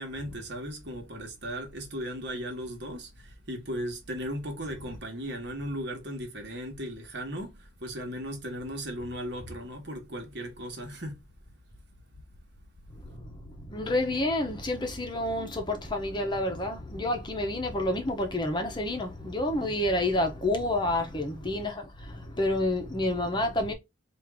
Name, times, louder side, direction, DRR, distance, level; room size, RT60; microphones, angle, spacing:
voice 1, 0.0-11.2 19.5-19.7, equal, 60° right, 1.3 m, -37 dB
voice 2, 12.9-23.7, left 1 dB, 25° left, 0.8 m, -29 dB
4.5 x 2.6 x 3.5 m
head